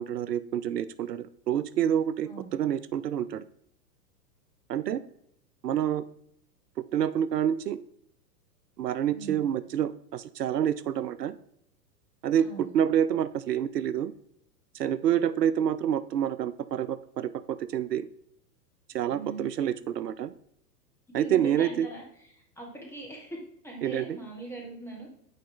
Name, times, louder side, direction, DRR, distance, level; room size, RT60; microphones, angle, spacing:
voice 1, 0.0-3.4 4.7-5.0 5.6-6.0 6.9-7.8 8.8-11.4 12.2-14.1 14.7-18.1 18.9-20.3 21.1-21.9 23.8-24.2, right 9 dB, 70° right, 14 dB, 0.5 m, -28 dB
voice 2, 9.1-9.4 12.4-12.7 19.1-19.5 21.2-22.0 22.6-23.4 23.6-25.1, right 3 dB, 5° left, -1 dB, 1.4 m, -40 dB
8.9 x 3.3 x 3.7 m, 0.70 s
figure-of-eight pair, 100°, 50 cm